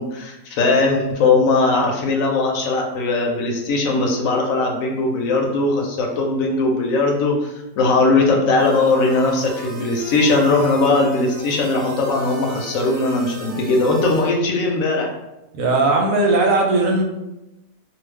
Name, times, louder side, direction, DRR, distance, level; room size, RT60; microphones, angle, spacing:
voice 1, 0.0-15.1, left 3 dB, 80° left, 1 dB, 1.0 m, -19 dB
sound 1, 8.6-14.3, right 3 dB, 60° right, 0.8 m, -38 dB
voice 2, 15.5-17.0, right 2 dB, 80° right, 1 dB, 1.0 m, -17 dB
2.4 x 2.3 x 3.3 m, 0.95 s
omnidirectional pair, 1.4 m